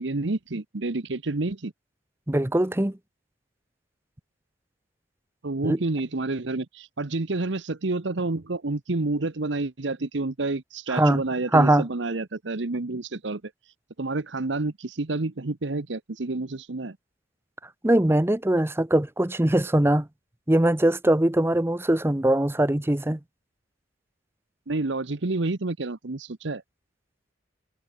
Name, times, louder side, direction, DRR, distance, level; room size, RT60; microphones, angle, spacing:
voice 1, 0.0-1.7 5.4-13.4 14.0-17.0 24.7-26.6, right 2 dB, 70° right, 1.0 m, -29 dB
voice 2, 2.3-3.0 5.6-5.8 10.9-11.2 11.5-11.9 17.8-20.1 20.5-23.2, right 1 dB, 15° right, 0.8 m, -21 dB
head